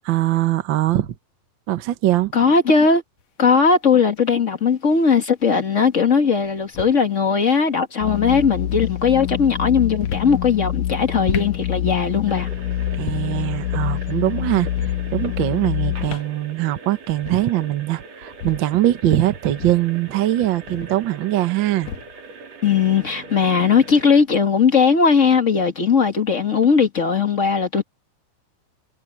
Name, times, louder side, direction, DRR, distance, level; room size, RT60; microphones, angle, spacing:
voice 1, 0.0-1.1 1.7-2.3 12.9-21.9, right 14 dB, 80° right, 1.0 m, -22 dB
voice 2, 2.3-3.0 3.4-12.5 22.6-27.8, left 5 dB, 30° left, 1.4 m, -18 dB
sound 1, 3.2-3.3 4.7-5.2 6.4-7.0 8.1-8.6 9.9-10.4 11.1-11.6 12.9-13.4 14.6-15.1 15.8-16.3 16.7-16.8 17.0-17.6 18.2-18.7 19.4-21.1 21.7-22.2, left 7 dB, 60° left, 2.3 m, -34 dB
sound 2, 8.0-16.1, left 12 dB, 80° left, 2.2 m, -26 dB
sound 3, 12.3-24.2, right 3 dB, 55° right, 3.3 m, -41 dB
omnidirectional pair, 3.8 m